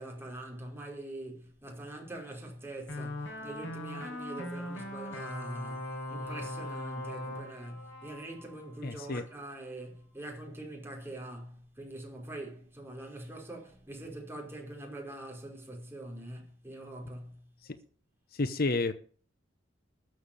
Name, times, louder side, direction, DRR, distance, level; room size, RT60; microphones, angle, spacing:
voice 1, 0.0-17.4, right 1 dB, 10° right, 5.1 m, -44 dB
sound 1, 2.9-9.0, left 1 dB, 65° left, 5.3 m, -40 dB
voice 2, 8.8-9.2 18.4-18.9, left 3 dB, 50° left, 0.9 m, -30 dB
13.0 x 7.3 x 8.8 m
head